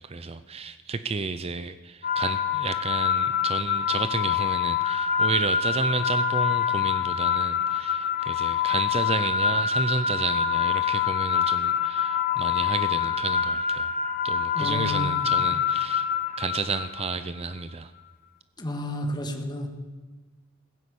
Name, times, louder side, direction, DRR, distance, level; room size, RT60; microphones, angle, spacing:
voice 1, 0.0-13.9 14.2-16.1 16.4-17.9, right 4 dB, 30° right, 12 dB, 0.5 m, -31 dB
sound 1, 2.0-17.2, left 8 dB, 40° left, 1.1 m, -25 dB
voice 2, 14.5-15.3 18.6-19.7, equal, 20° left, 3 dB, 1.7 m, -31 dB
16.0 x 9.8 x 8.4 m, 1.3 s
head